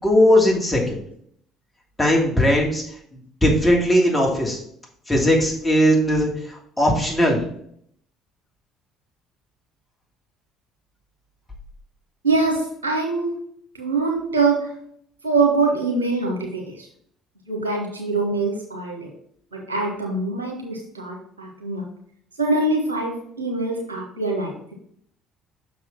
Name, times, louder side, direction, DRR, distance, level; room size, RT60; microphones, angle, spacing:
voice 1, 0.0-1.0 2.0-2.8 3.4-4.6 5.1-7.4, equal, 15° left, -2 dB, 2.7 m, -18 dB
voice 2, 12.2-13.3 13.8-14.7 15.2-16.9 17.5-19.1 19.5-21.8 22.4-24.5, right 3 dB, 90° right, -1 dB, 1.4 m, -23 dB
6.3 x 4.1 x 6.0 m, 0.66 s
figure-of-eight pair, 55°, 0 cm